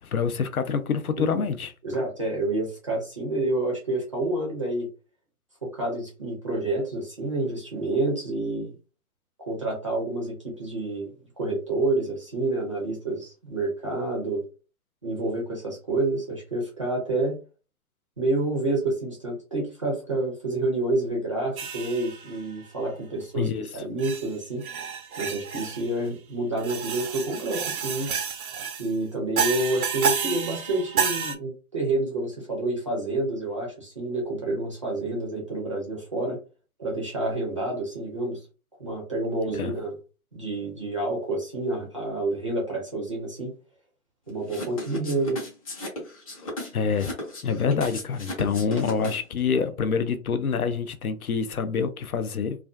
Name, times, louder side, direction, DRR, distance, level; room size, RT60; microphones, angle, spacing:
voice 1, 0.0-1.7 23.3-23.7 39.5-39.7 46.7-47.1 47.4-52.6, left 6 dB, 80° left, 0.6 m, -26 dB
voice 2, 1.8-4.9 5.6-8.7 9.5-11.1 11.4-14.4 15.0-17.4 18.2-24.6 25.2-28.1 28.8-36.4 36.8-38.4 38.8-39.9 40.3-43.5 44.3-45.4, right 2 dB, 25° right, 0.5 m, -28 dB
sound 1, 21.6-22.4 23.2-23.3 24.0-24.3 24.6-25.9 26.6-28.9 29.4-31.4, right 7 dB, 75° right, 0.6 m, -30 dB
sound 2, 44.5-49.4, left 1 dB, 25° left, 0.6 m, -36 dB
2.4 x 2.2 x 2.3 m
figure-of-eight pair, 140°, 44 cm